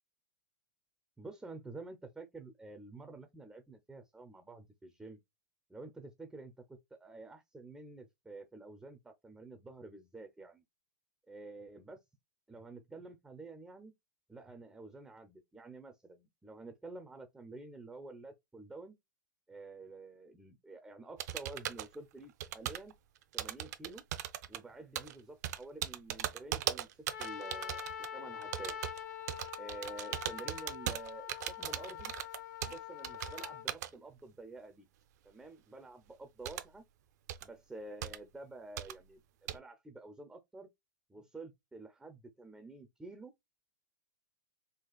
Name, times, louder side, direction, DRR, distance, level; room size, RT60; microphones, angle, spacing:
voice 1, 1.2-5.2 5.7-10.6 11.3-12.0 12.5-13.9 14.3-19.0 19.5-22.9 23.3-24.0 24.5-28.7 29.6-32.1 32.6-34.9 35.2-36.8 37.4-40.7 41.1-43.3, right 3 dB, 5° right, 0.4 m, -50 dB
sound 1, 21.2-21.9 22.4-22.9 23.3-24.6 24.9-25.1 25.4-28.1 28.4-29.0 29.3-32.8 33.0-33.9 36.4-36.6 37.3-37.4 38.0-38.2 38.8-38.9 39.5-39.6, right 12 dB, 60° right, 0.5 m, -38 dB
Trumpet, 27.1-33.7, left 10 dB, 70° left, 0.8 m, -44 dB
4.0 x 2.4 x 2.3 m
hypercardioid pair, 135°, 10 cm